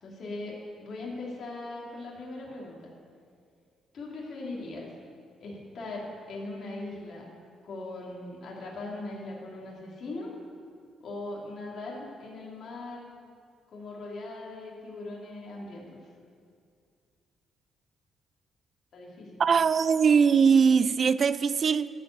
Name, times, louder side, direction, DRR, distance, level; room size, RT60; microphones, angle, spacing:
voice 1, 0.0-2.9 3.9-4.9 5.4-7.3 7.6-10.3 11.0-13.0 13.7-16.0 18.9-19.4, left 2 dB, 60° left, -3 dB, 2.7 m, -39 dB
voice 2, 19.4-21.9, right 6 dB, 45° right, 16 dB, 0.4 m, -21 dB
14.0 x 5.1 x 9.3 m, 2.3 s
cardioid pair, 90°, 0 cm